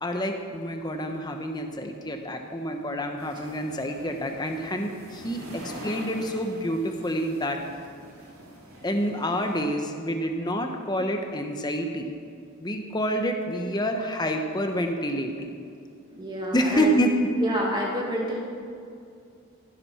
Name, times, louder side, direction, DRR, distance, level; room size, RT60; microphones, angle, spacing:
voice 1, 0.0-7.6 8.8-12.1 12.6-15.5 16.5-17.2, equal, 20° left, 4 dB, 1.0 m, -28 dB
sound 1, 3.2-9.6, right 1 dB, 80° right, 3.4 m, -44 dB
voice 2, 16.1-17.0 17.4-18.4, equal, 20° right, -2 dB, 2.3 m, -29 dB
16.0 x 11.0 x 4.4 m, 2.4 s
head